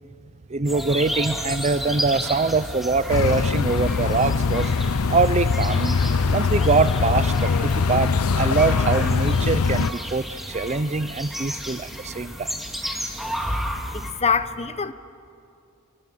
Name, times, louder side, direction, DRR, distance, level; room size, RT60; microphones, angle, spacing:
voice 1, 0.5-4.7 5.1-6.0 6.3-12.5, right 4 dB, 30° right, 0.6 m, -23 dB
sound 1, 0.7-14.1, equal, ahead, 2.3 m, -32 dB
sound 2, 3.1-9.9, left 5 dB, 85° left, 0.6 m, -22 dB
voice 2, 13.9-14.9, left 5 dB, 30° left, 0.8 m, -24 dB
29.0 x 28.5 x 6.4 m
head